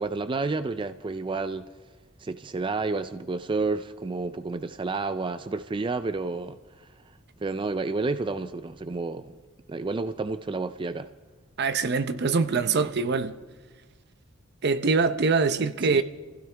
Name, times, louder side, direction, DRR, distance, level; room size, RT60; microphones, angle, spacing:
voice 1, 0.0-1.7 2.2-6.9 7.4-9.4 9.7-11.1 15.8-16.0, right 3 dB, 25° right, 0.4 m, -30 dB
voice 2, 11.6-13.4 14.6-16.0, right 4 dB, 55° right, 0.7 m, -24 dB
27.0 x 15.5 x 3.4 m
head